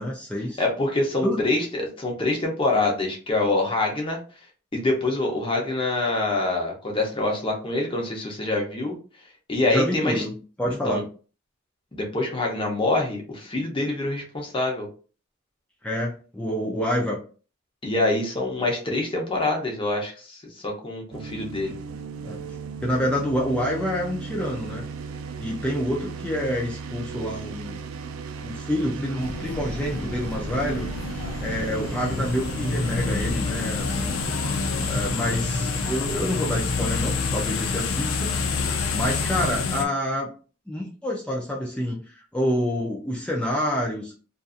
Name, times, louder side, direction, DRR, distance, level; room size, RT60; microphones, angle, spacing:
voice 1, 0.0-0.6 1.2-1.4 9.7-10.3 10.6-11.1 15.8-17.2 22.2-22.4 22.8-24.9 25.4-27.8 28.4-30.9 31.4-34.2 34.9-38.3 38.9-40.3 40.7-44.1, equal, 5° left, -3 dB, 0.4 m, -27 dB
voice 2, 0.6-4.2 4.7-9.0 9.5-10.2 10.8-11.0 11.9-14.9 17.8-21.8, left 2 dB, 25° left, 1 dB, 0.7 m, -25 dB
sound 1, 21.1-39.4, right 5 dB, 85° right, 0.3 m, -37 dB
sound 2, 29.2-39.9, left 4 dB, 85° left, 0.4 m, -28 dB
2.6 x 2.5 x 2.4 m, 0.37 s
head